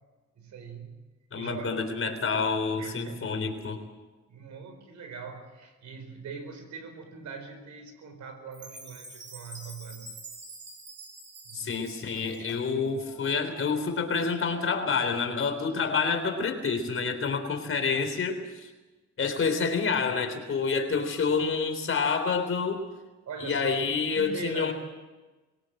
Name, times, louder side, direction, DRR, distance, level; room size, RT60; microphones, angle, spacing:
voice 1, 0.4-1.0 1.3-2.0 2.8-3.3 4.3-10.2 11.4-11.8 23.3-24.7, right 5 dB, 70° right, 7 dB, 4.7 m, -42 dB
voice 2, 1.3-3.8 11.5-18.7 19.2-22.8 23.4-24.7, left 5 dB, 45° left, 6 dB, 3.7 m, -28 dB
Chime, 8.5-12.7, right 2 dB, 35° right, 4.8 m, -46 dB
sound 1, 12.0-14.0, left 6 dB, 85° left, 2.9 m, -50 dB
22.5 x 17.5 x 7.9 m, 1.2 s
cardioid pair, 90°, 30 cm